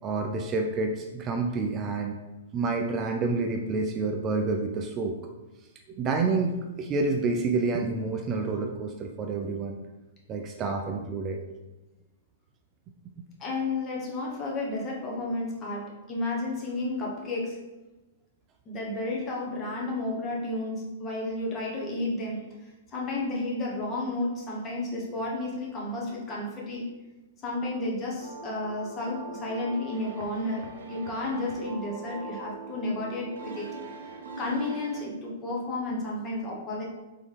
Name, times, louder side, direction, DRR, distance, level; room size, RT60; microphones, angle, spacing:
voice 1, 0.0-2.2 2.5-5.2 5.9-9.8 10.3-11.4, right 3 dB, 25° right, 4 dB, 0.3 m, -28 dB
voice 2, 13.4-17.6 18.7-22.4 22.9-26.9 27.4-33.7 34.4-36.8, left 2 dB, 25° left, -3 dB, 1.1 m, -32 dB
sound 1, 28.2-35.1, right 3 dB, 75° right, 0.7 m, -42 dB
4.0 x 3.7 x 3.3 m, 1.1 s
hypercardioid pair, 140°, 0 cm